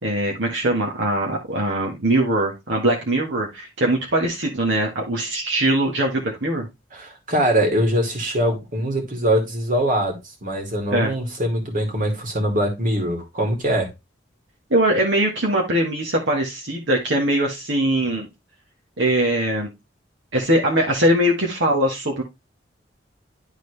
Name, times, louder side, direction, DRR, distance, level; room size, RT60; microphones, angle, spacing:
voice 1, 0.0-6.7 10.9-11.1 14.7-18.3 19.0-19.7 20.3-22.2, right 1 dB, 70° right, 1.6 m, -21 dB
voice 2, 6.9-13.9, equal, 45° right, 2.4 m, -22 dB
11.5 x 3.9 x 3.3 m
head